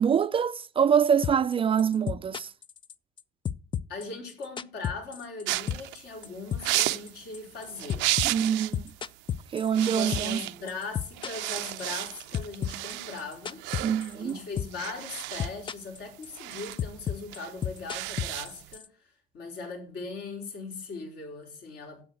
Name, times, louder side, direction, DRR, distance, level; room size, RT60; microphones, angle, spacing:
voice 1, 0.0-2.5 8.2-8.9 9.5-10.4 13.8-14.4, right 7 dB, 30° right, 0.4 m, -25 dB
sound 1, 1.2-1.5 1.8-3.2 3.4-5.4 5.7-6.0 6.2-10.4 10.7-12.1 12.3-14.3 14.6-14.9 15.1-16.0 16.2-18.9, left 9 dB, 25° left, 0.4 m, -32 dB
voice 2, 3.9-8.2 9.8-13.6 14.1-22.0, left 4 dB, 65° left, 4.4 m, -39 dB
sound 2, 5.5-8.8 9.1-9.3 9.6-10.8 11.1-18.8, right 20 dB, 90° right, 0.5 m, -33 dB
8.7 x 7.8 x 6.2 m
cardioid pair, 120°, 18 cm